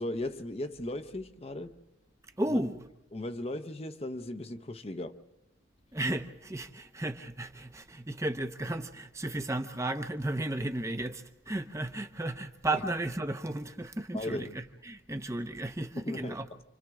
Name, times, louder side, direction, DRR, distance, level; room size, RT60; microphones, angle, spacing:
voice 1, 0.0-1.8 2.5-2.6 3.1-5.2 12.7-12.8 14.1-14.6 15.9-16.4, left 1 dB, 35° left, 0.8 m, -37 dB
voice 2, 2.4-2.8 5.9-16.5, right 1 dB, 15° right, 0.8 m, -34 dB
28.5 x 26.0 x 3.7 m
head